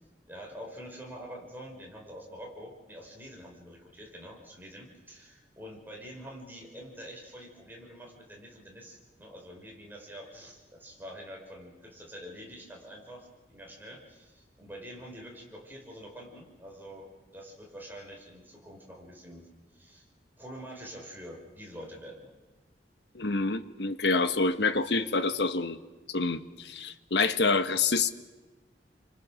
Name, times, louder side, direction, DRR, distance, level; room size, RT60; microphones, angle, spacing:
voice 1, 0.3-19.5 19.7-20.0 20.4-22.3, equal, 10° right, -1 dB, 5.2 m, -46 dB
voice 2, 23.1-25.8 26.1-28.1, left 3 dB, 70° left, 11 dB, 1.3 m, -27 dB
30.0 x 25.0 x 6.4 m, 1.2 s
head